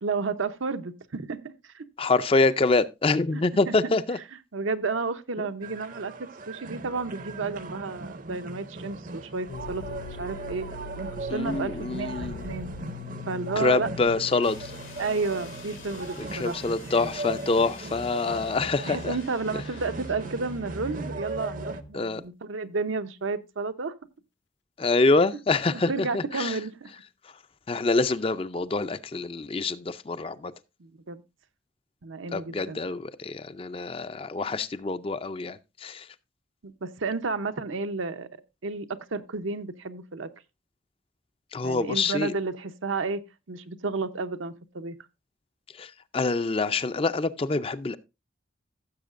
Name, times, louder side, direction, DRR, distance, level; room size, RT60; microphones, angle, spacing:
voice 1, 0.0-1.8 3.3-3.9 4.5-10.7 11.0-12.7 13.3-13.9 15.0-16.6 18.9-23.9 25.7-26.9 30.8-31.2 32.0-32.8 36.6-38.3 38.6-40.3 41.6-43.2 43.5-45.0, right 4 dB, 85° right, 0.8 m, -32 dB
voice 2, 2.0-4.2 5.4-5.5 11.3-12.4 13.6-14.7 16.3-19.1 21.9-22.2 24.8-26.6 27.7-30.5 32.3-36.1 41.5-42.3 45.8-48.0, left 3 dB, 30° left, 0.4 m, -26 dB
sound 1, 5.6-21.8, right 2 dB, 40° right, 0.6 m, -39 dB
sound 2, 9.5-17.2, left 4 dB, 70° left, 0.7 m, -42 dB
sound 3, 14.4-21.9, left 1 dB, 90° left, 2.4 m, -44 dB
15.5 x 7.2 x 2.5 m
head